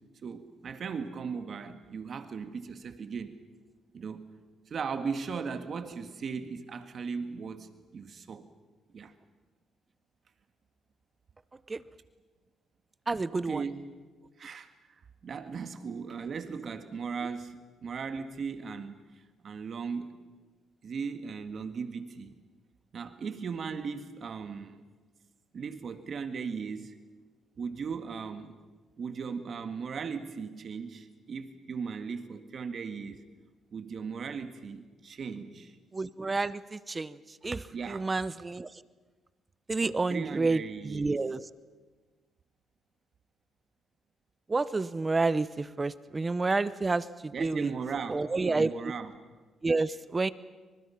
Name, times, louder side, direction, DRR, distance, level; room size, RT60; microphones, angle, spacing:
voice 1, 0.2-3.4 3.9-4.3 4.7-8.5 8.9-9.1 13.3-13.8 14.4-14.7 15.2-20.2 20.8-22.3 22.9-24.8 25.5-27.0 27.6-28.5 29.0-33.2 33.7-35.8 37.7-38.1 39.8-41.2 47.3-49.1, right 5 dB, 50° right, 9 dB, 1.8 m, -37 dB
voice 2, 13.1-13.6 35.9-38.7 39.7-41.5 44.5-47.7 48.1-48.7 49.6-50.3, right 3 dB, 25° right, 17 dB, 0.7 m, -29 dB
28.0 x 25.5 x 5.8 m, 1.4 s
cardioid pair, 90°, 0 cm